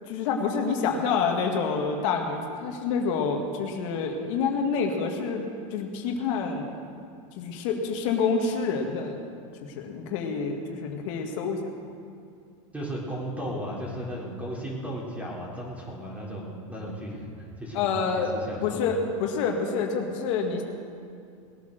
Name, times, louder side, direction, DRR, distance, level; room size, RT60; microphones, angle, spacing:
voice 1, 0.1-6.7 7.4-9.2 9.8-11.6 17.7-18.3 18.6-20.6, left 5 dB, 65° left, 2 dB, 1.9 m, -27 dB
voice 2, 12.7-18.8, equal, 10° right, -3 dB, 3.7 m, -35 dB
20.0 x 8.6 x 6.6 m, 2.4 s
supercardioid pair, 125°, 17 cm